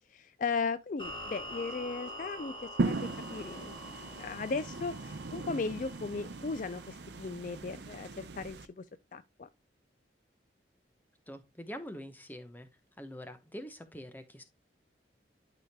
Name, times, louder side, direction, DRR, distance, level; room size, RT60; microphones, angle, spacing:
voice 1, 0.1-8.8 9.1-9.5, left 4 dB, 45° left, 0.4 m, -37 dB
sound 1, 1.0-8.2, equal, 25° left, 3.4 m, -46 dB
sound 2, 2.8-8.7, right 3 dB, 70° right, 0.6 m, -38 dB
voice 2, 11.3-12.7 13.0-14.4, equal, 10° left, 0.9 m, -44 dB
11.5 x 5.0 x 2.2 m
head